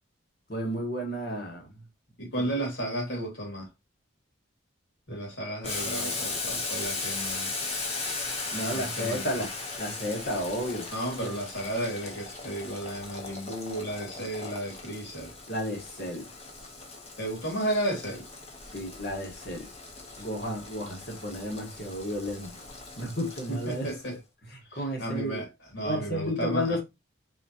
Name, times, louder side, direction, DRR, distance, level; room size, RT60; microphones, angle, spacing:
voice 1, 0.5-1.7 8.5-9.5 9.8-10.9 11.2-11.3 15.5-16.3 18.7-19.7 20.2-22.6 23.0-24.1 24.5-25.4 25.8-26.8, equal, 55° left, 1.5 m, -32 dB
voice 2, 2.2-3.7 5.1-7.5 8.7-9.5 10.9-15.3 17.2-18.2 23.5-24.2 24.7-25.5 25.7-26.8, right 1 dB, 70° left, 2.6 m, -33 dB
Boiling, 5.6-24.1, left 3 dB, 30° left, 1.1 m, -38 dB
4.2 x 3.8 x 2.9 m
head